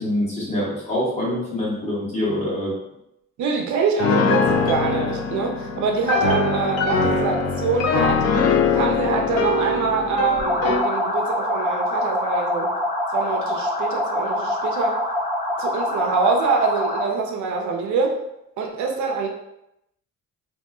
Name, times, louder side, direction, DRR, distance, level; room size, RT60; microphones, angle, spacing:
voice 1, 0.0-2.7, left 1 dB, 20° left, -7 dB, 1.4 m, -25 dB
voice 2, 3.4-8.2 8.7-12.7 13.1-15.0 15.6-18.2 18.6-19.3, right 4 dB, 70° right, 1 dB, 0.6 m, -24 dB
Piano, 4.0-10.9, left 4 dB, 55° left, 0.4 m, -22 dB
sound 1, 10.4-17.2, left 1 dB, 15° right, 0.6 m, -25 dB
3.0 x 2.6 x 2.3 m, 0.83 s
cardioid pair, 90°, 30 cm